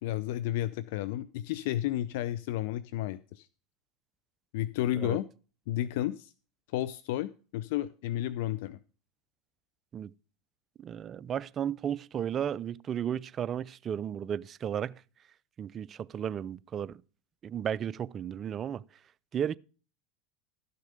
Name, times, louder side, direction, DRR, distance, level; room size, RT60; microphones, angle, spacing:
voice 1, 0.0-3.5 4.5-5.2 5.7-6.3 6.7-8.8, left 13 dB, 70° left, 0.5 m, -32 dB
voice 2, 10.8-15.0 15.6-17.0 17.4-18.8 19.3-19.6, right 9 dB, 35° right, 0.5 m, -34 dB
13.0 x 6.6 x 5.1 m
hypercardioid pair, 100°, 0 cm